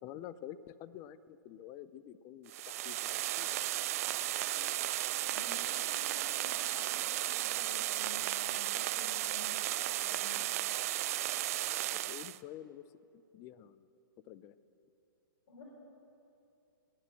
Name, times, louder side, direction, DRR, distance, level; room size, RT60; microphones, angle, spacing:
voice 1, 0.0-3.5 11.9-12.8 13.3-13.9 14.2-14.6, left 11 dB, 25° left, 15 dB, 0.5 m, -48 dB
sound 1, 2.5-12.4, right 15 dB, 40° right, 0.3 m, -34 dB
voice 2, 4.5-4.8 5.3-10.4 15.5-15.6, left 1 dB, 45° left, -4 dB, 3.9 m, -52 dB
17.0 x 9.7 x 7.4 m, 2.7 s
hypercardioid pair, 135°, 12 cm